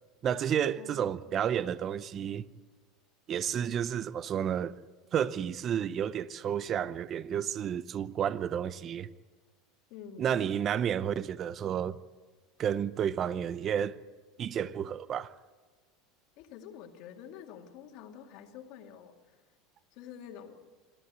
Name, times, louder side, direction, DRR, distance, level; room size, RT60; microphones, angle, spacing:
voice 1, 0.2-2.5 3.3-4.8 5.1-9.1 10.2-12.0 12.6-14.0 14.4-15.3, right 9 dB, 30° right, 0.6 m, -31 dB
voice 2, 0.8-1.4 9.9-10.5 16.4-19.4 19.9-20.6, left 8 dB, 55° left, 2.2 m, -48 dB
26.5 x 13.5 x 8.2 m
supercardioid pair, 145°, 0 cm